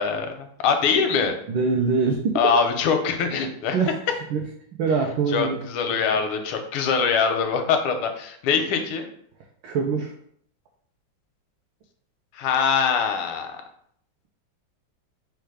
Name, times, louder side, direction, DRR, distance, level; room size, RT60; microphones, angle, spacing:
voice 1, 0.0-1.3 2.3-3.8 5.3-9.1 12.3-13.6, left 6 dB, 85° left, 5 dB, 1.5 m, -23 dB
voice 2, 1.5-2.4 3.7-4.4 4.8-6.0 9.6-10.1, right 5 dB, 70° right, 0 dB, 1.2 m, -24 dB
4.4 x 2.3 x 4.8 m, 0.65 s
omnidirectional pair, 2.3 m